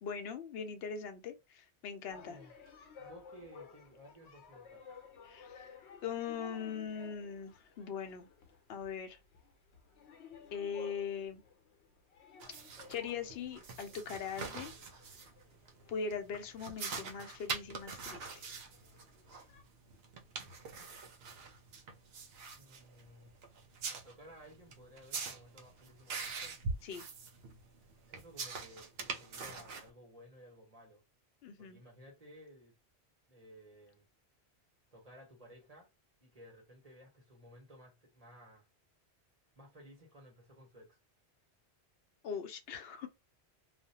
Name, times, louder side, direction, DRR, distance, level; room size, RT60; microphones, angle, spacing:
voice 1, 0.0-2.4 5.2-5.7 6.0-8.3 8.7-9.2 10.5-11.4 12.9-14.7 15.9-18.4 26.8-27.0 31.4-31.8 42.2-43.1, left 6 dB, 70° left, 0.8 m, -41 dB
sound 1, 2.1-19.6, left 6 dB, 85° left, 1.0 m, -57 dB
voice 2, 2.1-2.5 3.0-4.9 22.5-23.4 23.9-26.6 28.1-31.0 31.6-32.7 33.3-34.1 34.9-35.9 36.2-38.7 39.6-41.0, equal, 35° right, 1.0 m, -56 dB
sound 2, 12.4-29.9, right 4 dB, 70° right, 0.8 m, -44 dB
2.4 x 2.1 x 2.7 m
omnidirectional pair, 1.1 m